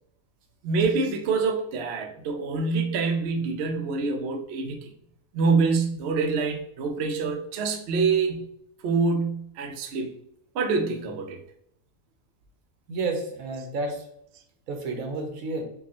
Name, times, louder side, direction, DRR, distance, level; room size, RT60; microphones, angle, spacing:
voice 1, 0.6-4.8 5.3-8.5 8.8-10.1 10.5-11.4, right 4 dB, 65° right, 4 dB, 0.7 m, -26 dB
voice 2, 12.9-14.1 14.7-15.6, right 3 dB, 90° right, 3 dB, 1.2 m, -30 dB
4.6 x 2.3 x 2.9 m, 0.73 s
omnidirectional pair, 1.4 m